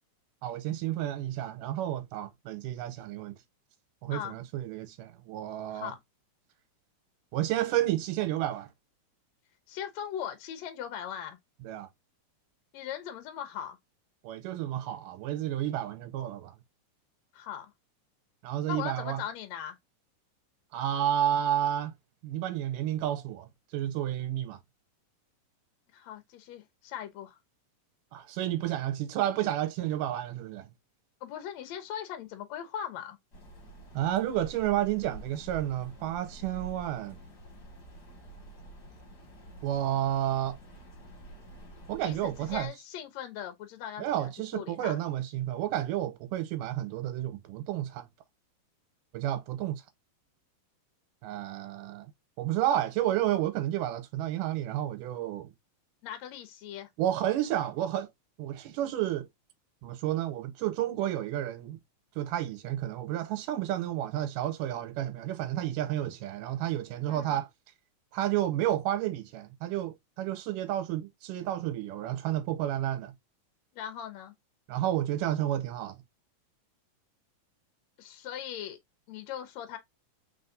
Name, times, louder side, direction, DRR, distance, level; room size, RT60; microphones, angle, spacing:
voice 1, 0.4-3.3 4.0-5.9 7.3-8.7 11.6-11.9 14.2-16.5 18.4-19.2 20.7-21.9 22.2-24.6 28.1-30.7 33.9-37.2 39.6-40.6 41.9-42.7 44.0-48.1 49.1-49.8 51.2-52.1 52.4-55.5 57.0-58.1 58.4-59.3 59.8-61.8 62.2-67.5 68.1-73.1 74.7-76.0, right 12 dB, 90° right, 2.3 m, -31 dB
voice 2, 5.7-6.0 9.7-11.4 12.7-13.8 17.3-17.7 18.7-19.8 25.9-27.4 31.2-33.2 42.0-45.0 56.0-56.9 67.1-67.4 73.7-74.3 78.0-78.8 79.1-79.8, left 10 dB, 70° left, 1.8 m, -39 dB
sound 1, 33.3-42.7, right 2 dB, 40° left, 1.7 m, -48 dB
4.2 x 4.0 x 2.6 m
omnidirectional pair, 3.8 m